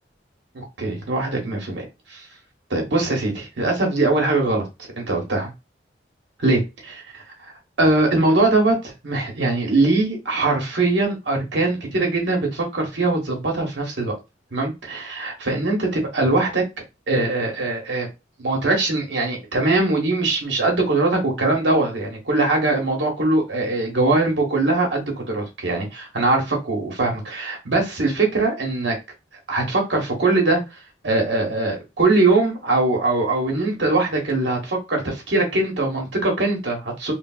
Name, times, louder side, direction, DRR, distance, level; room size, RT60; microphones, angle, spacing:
voice 1, 0.5-1.8 2.1-2.2 2.7-4.7 5.0-5.5 6.4-6.6 7.8-14.2 14.5-16.6 17.1-18.1 18.4-28.9 29.5-30.6 31.0-37.1, right 2 dB, 75° right, 1.0 m, -21 dB
3.3 x 2.0 x 2.4 m
head